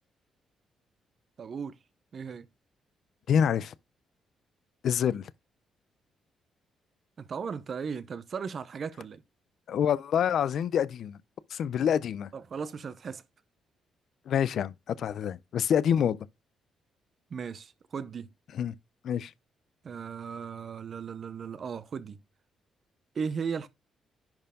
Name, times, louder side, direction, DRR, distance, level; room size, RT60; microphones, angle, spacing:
voice 1, 1.4-1.8 2.1-2.5 7.2-9.2 12.3-13.2 17.3-18.3 19.8-22.2 23.1-23.7, right 6 dB, 40° right, 0.6 m, -36 dB
voice 2, 3.3-3.7 4.8-5.3 9.7-11.2 11.5-12.3 14.3-16.3 18.5-18.7 19.0-19.3, left 8 dB, 60° left, 0.5 m, -27 dB
10.5 x 4.4 x 3.6 m
cardioid pair, 145°, 0 cm